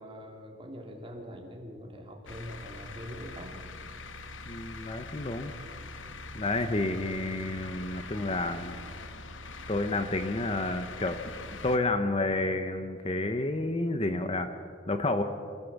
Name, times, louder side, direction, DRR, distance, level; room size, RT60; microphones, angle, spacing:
voice 1, 0.0-3.6, equal, 25° right, 1 dB, 2.6 m, -43 dB
sound 1, 2.3-11.8, left 3 dB, 80° left, 1.2 m, -43 dB
voice 2, 4.5-5.5 6.3-8.8 9.7-11.2 11.6-14.5 14.9-15.2, left 2 dB, 30° left, 8 dB, 0.9 m, -30 dB
26.5 x 15.5 x 7.3 m, 2.4 s
head